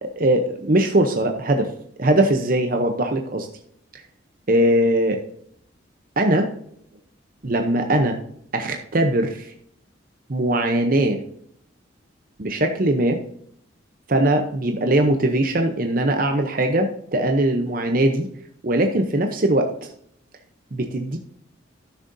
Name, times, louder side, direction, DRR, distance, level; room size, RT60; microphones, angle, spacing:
voice 1, 0.0-1.7 2.0-3.5 4.5-5.2 6.2-6.5 7.4-8.2 8.5-9.5 10.3-11.2 12.4-13.2 14.1-18.3 18.6-19.7 20.7-21.2, right 1 dB, 45° right, 4 dB, 0.7 m, -20 dB
14.5 x 6.4 x 2.7 m, 0.68 s
head